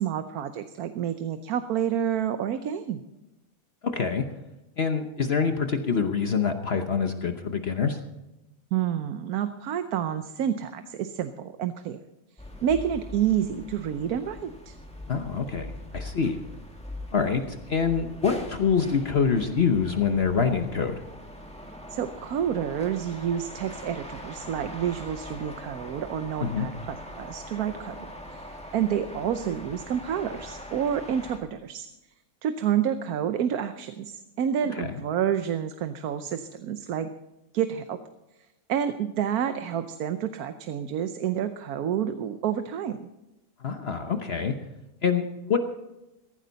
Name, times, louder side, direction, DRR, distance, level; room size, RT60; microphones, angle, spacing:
voice 1, 0.0-3.0 8.7-12.0 12.6-14.7 21.9-28.0 28.3-31.9 32.4-37.1 37.5-38.0 38.7-43.1, right 9 dB, 85° right, 9 dB, 1.2 m, -29 dB
voice 2, 3.8-4.2 4.8-8.0 15.1-16.4 17.1-21.0 26.4-26.7 34.7-34.9 43.6-44.5 45.0-45.6, left 6 dB, 50° left, 7 dB, 1.1 m, -25 dB
sound 1, 12.4-31.4, left 1 dB, 5° left, 1.9 m, -42 dB
16.0 x 15.0 x 4.0 m, 0.97 s
omnidirectional pair, 1.5 m